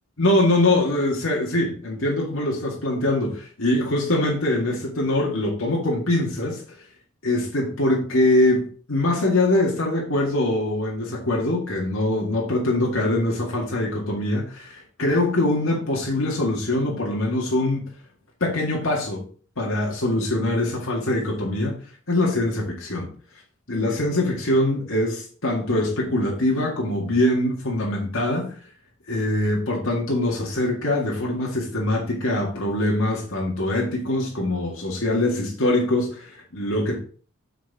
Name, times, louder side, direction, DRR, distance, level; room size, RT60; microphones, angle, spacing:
voice 1, 0.2-6.8 7.2-17.8 18.4-19.2 19.6-21.8 22.1-23.1 23.7-28.6 29.1-37.0, left 1 dB, 75° left, 2.0 m, -23 dB
9.1 x 4.4 x 4.8 m
head